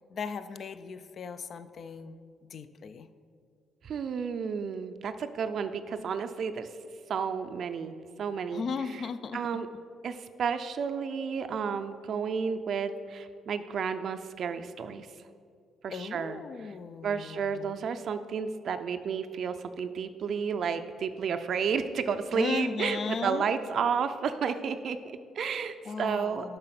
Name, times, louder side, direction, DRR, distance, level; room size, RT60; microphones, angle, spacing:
voice 1, 0.1-2.2 2.5-3.1 8.5-9.5 15.9-17.8 22.3-23.5 25.9-26.6, left 5 dB, 55° left, 13 dB, 0.4 m, -36 dB
voice 2, 3.8-6.7 7.1-8.6 8.9-9.0 9.3-9.7 10.0-15.1 15.8-16.7 17.0-26.6, right 6 dB, 60° right, 9 dB, 0.4 m, -32 dB
7.7 x 5.5 x 5.9 m, 2.3 s
cardioid pair, 90°, 0 cm